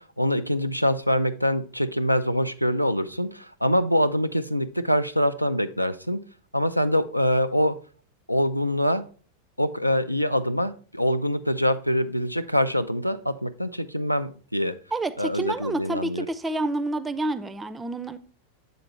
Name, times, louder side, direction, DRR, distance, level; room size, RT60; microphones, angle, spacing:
voice 1, 0.0-6.2 6.5-7.8 8.3-9.0 9.6-14.8 15.2-16.3, equal, 90° left, 0.3 m, -24 dB
voice 2, 14.9-18.2, right 2 dB, 10° right, 0.4 m, -29 dB
7.7 x 3.9 x 4.3 m
figure-of-eight pair, 90°, 0 cm